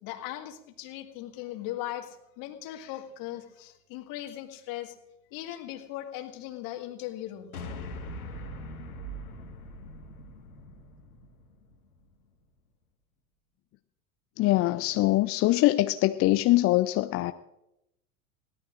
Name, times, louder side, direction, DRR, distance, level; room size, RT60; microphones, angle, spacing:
voice 1, 0.0-4.9 5.3-7.5, left 13 dB, 50° left, 5 dB, 2.0 m, -38 dB
sound 1, 7.5-12.0, equal, 85° left, 1.8 m, -41 dB
voice 2, 14.4-17.3, left 17 dB, 35° left, 11 dB, 0.5 m, -23 dB
21.5 x 16.5 x 2.5 m, 0.88 s
figure-of-eight pair, 80°, 42 cm